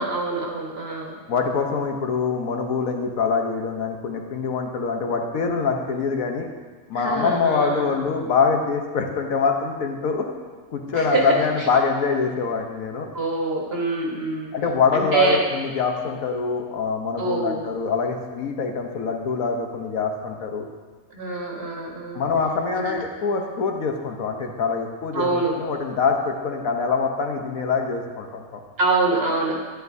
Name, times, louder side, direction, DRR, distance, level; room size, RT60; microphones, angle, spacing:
voice 1, 0.0-1.2 6.9-7.9 10.9-11.7 13.1-14.5 14.9-15.4 17.2-17.6 21.1-22.3 22.7-23.0 25.1-25.5 28.8-29.6, right 3 dB, 45° right, -1 dB, 1.5 m, -25 dB
voice 2, 1.3-6.5 6.9-10.3 10.7-13.1 14.5-20.6 22.1-28.6, left 5 dB, 75° left, 3 dB, 1.3 m, -24 dB
10.0 x 10.0 x 2.7 m, 1.4 s
omnidirectional pair, 1.5 m